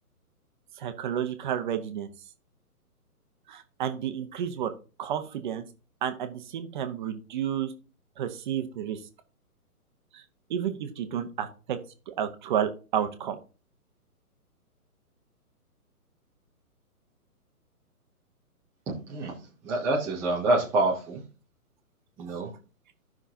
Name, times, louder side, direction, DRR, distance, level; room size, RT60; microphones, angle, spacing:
voice 1, 0.8-2.1 3.5-4.7 5.0-5.6 6.0-7.7 8.2-9.0 10.1-10.2 10.5-11.8 12.1-13.4, right 9 dB, 30° right, 9 dB, 1.0 m, -31 dB
voice 2, 19.6-21.2 22.2-22.5, right 2 dB, 5° right, -5 dB, 0.6 m, -26 dB
15.0 x 6.0 x 2.8 m, 0.34 s
hypercardioid pair, 140°, 46 cm